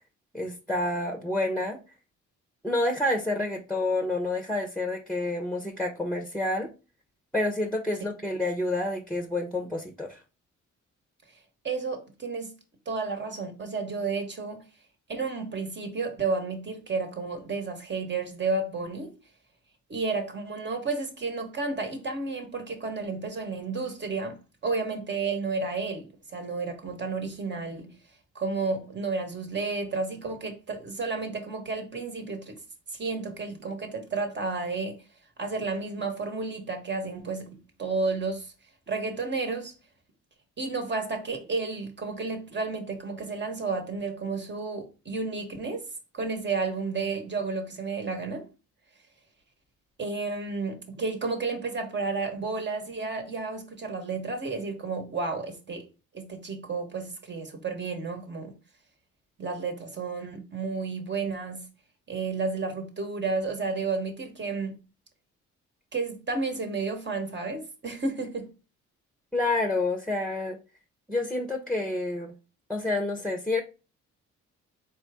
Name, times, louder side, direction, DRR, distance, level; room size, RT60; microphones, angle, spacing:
voice 1, 0.3-1.8 2.6-6.7 7.3-10.2 69.3-70.6 71.1-72.3 72.7-73.6, left 2 dB, ahead, 0.9 m, -28 dB
voice 2, 11.6-12.6 12.8-14.6 15.1-19.2 19.9-28.0 28.3-32.6 32.9-35.0 35.4-38.5 38.9-39.7 40.6-48.5 50.0-55.9 56.1-58.5 59.4-61.7 62.1-64.8 65.9-68.5, right 4 dB, 35° right, 1.3 m, -32 dB
4.3 x 3.3 x 3.6 m
cardioid pair, 90°, 30 cm